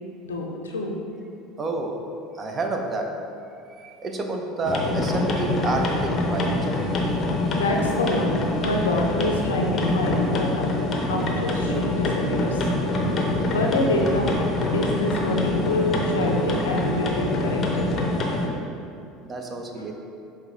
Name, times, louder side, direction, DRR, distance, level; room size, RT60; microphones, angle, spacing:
voice 1, 0.2-1.0 7.5-10.7 11.1-12.7 13.5-14.4 14.7-17.9, left 2 dB, 90° left, 0 dB, 0.4 m, -26 dB
voice 2, 1.6-2.0 2.3-3.2 3.6-6.7 19.2-19.9, right 2 dB, 30° right, 3 dB, 0.5 m, -29 dB
sound 1, 4.6-18.5, left 1 dB, 40° left, 0.6 m, -25 dB
4.9 x 2.2 x 3.6 m, 2.5 s
hypercardioid pair, 75°, 0 cm